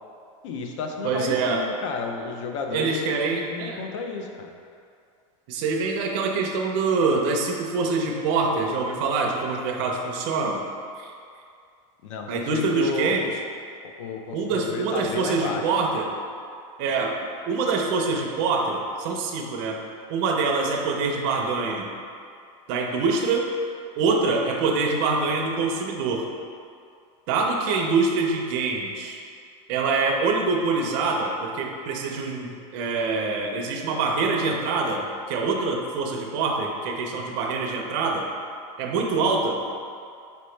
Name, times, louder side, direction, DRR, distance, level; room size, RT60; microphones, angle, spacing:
voice 1, 0.4-3.2 3.5-4.5 12.0-13.2 13.8-15.6, left 4 dB, 70° left, 3 dB, 0.5 m, -32 dB
voice 2, 1.0-1.6 2.7-3.8 5.5-10.6 11.0-11.1 12.3-13.3 14.3-16.1 16.8-17.2 17.5-19.8 20.1-21.9 22.7-23.5 24.0-26.3 27.3-29.2 29.7-38.3 38.8-39.6, right 4 dB, 45° right, 0 dB, 0.5 m, -25 dB
5.3 x 2.9 x 3.2 m, 2.4 s
supercardioid pair, 170°, 16 cm